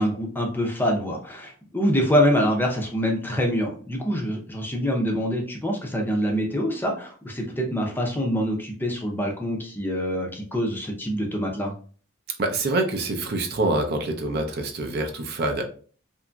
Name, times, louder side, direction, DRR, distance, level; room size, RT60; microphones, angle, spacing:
voice 1, 0.0-11.7, equal, 10° left, 1 dB, 0.5 m, -25 dB
voice 2, 12.4-15.6, right 2 dB, 50° right, 4 dB, 0.5 m, -26 dB
2.8 x 2.6 x 2.2 m, 0.42 s
head